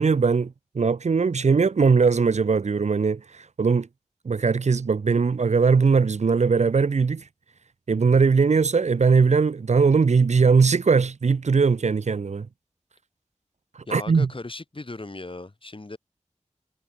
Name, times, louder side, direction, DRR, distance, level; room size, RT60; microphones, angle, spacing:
voice 1, 0.0-3.9 4.2-7.3 7.9-12.5 13.7-14.3, right 5 dB, 70° right, 0.7 m, -20 dB
voice 2, 13.9-16.0, left 2 dB, 45° left, 5.6 m, -37 dB
wide cardioid pair, 50°, 12 cm